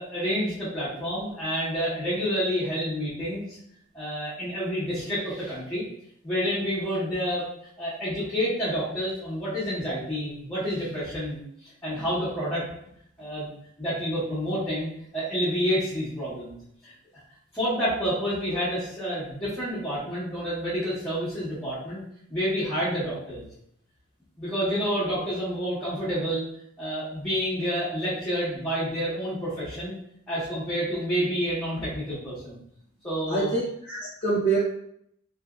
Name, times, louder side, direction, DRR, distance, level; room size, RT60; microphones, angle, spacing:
voice 1, 0.0-3.6 3.9-5.8 6.2-7.5 7.8-12.6 13.2-13.5 13.8-16.5 16.8-16.9 17.5-22.0 22.3-23.5 24.4-26.4 26.8-29.9 30.3-32.6 33.0-33.5, equal, 15° left, -13 dB, 1.1 m, -29 dB
voice 2, 33.3-34.6, right 3 dB, 45° left, -7 dB, 0.9 m, -26 dB
2.8 x 2.6 x 2.4 m, 0.71 s
head